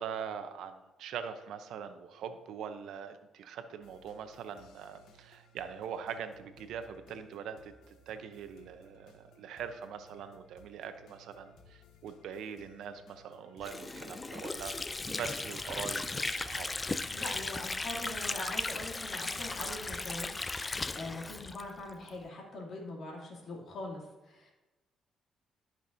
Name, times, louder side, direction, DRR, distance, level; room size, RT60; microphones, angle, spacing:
voice 1, 0.0-7.7 8.1-14.8 15.1-16.7, right 7 dB, 80° right, 9 dB, 0.7 m, -42 dB
sound 1, 3.8-20.5, left 1 dB, 85° left, 1.0 m, -61 dB
Water / Sink (filling or washing), 13.6-22.2, left 3 dB, 25° left, 0.4 m, -36 dB
voice 2, 17.1-24.5, left 2 dB, 60° left, -2 dB, 2.7 m, -43 dB
13.0 x 5.9 x 2.7 m, 1.1 s
cardioid pair, 90°, 0 cm